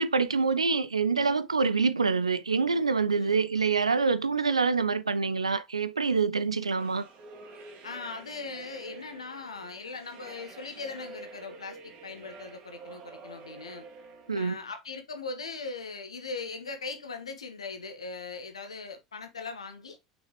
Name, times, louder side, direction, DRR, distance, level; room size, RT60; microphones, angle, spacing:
voice 1, 0.0-7.1 14.3-14.6, right 4 dB, 80° right, 0.6 m, -26 dB
sound 1, 6.7-14.5, right 3 dB, 40° right, 2.2 m, -48 dB
voice 2, 7.8-13.8 14.3-20.0, left 4 dB, 75° left, 1.6 m, -40 dB
6.4 x 6.1 x 3.2 m
figure-of-eight pair, 80°, 3 cm